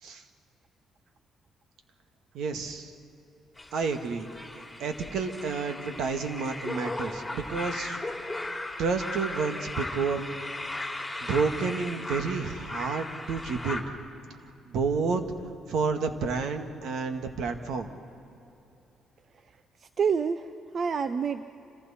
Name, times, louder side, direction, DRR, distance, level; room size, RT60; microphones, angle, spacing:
voice 1, 2.3-2.9 3.7-8.0 8.8-10.3 11.2-13.8 14.7-15.2 15.7-17.9, right 5 dB, 80° right, 6 dB, 1.8 m, -30 dB
sound 1, 3.6-13.8, left 2 dB, 10° left, 3.3 m, -37 dB
voice 2, 20.0-21.5, right 6 dB, 50° right, 10 dB, 0.7 m, -27 dB
29.0 x 27.0 x 4.3 m, 2.9 s
cardioid pair, 90°, 0 cm